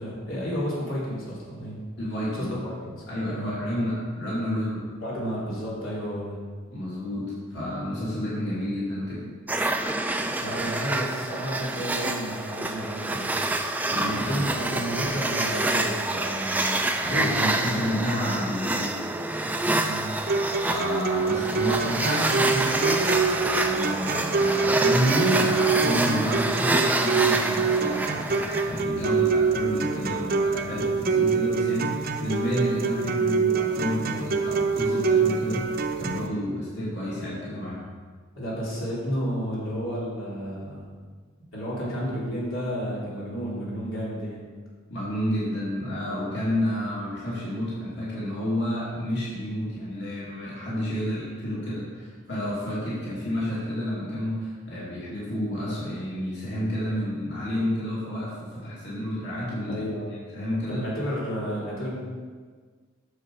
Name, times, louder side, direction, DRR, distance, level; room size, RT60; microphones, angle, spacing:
voice 1, 0.0-1.8 2.5-3.0 3.4-3.6 5.0-6.4 10.4-13.3 14.0-16.8 17.1-18.0 19.8-20.1 38.4-40.8 41.5-44.5 50.9-51.1 59.7-60.1 60.7-62.0, equal, 80° left, -7 dB, 3.2 m, -31 dB
voice 2, 2.0-2.5 3.1-4.9 6.7-9.3 13.9-14.4 16.9-19.0 20.4-23.1 23.6-37.8 44.9-60.8, equal, 55° left, -8 dB, 2.8 m, -30 dB
sound 1, 9.5-28.8, right 2 dB, 10° right, 0.4 m, -27 dB
sound 2, 20.3-36.3, right 5 dB, 45° right, 0.8 m, -25 dB
10.5 x 7.1 x 4.7 m, 1.5 s
head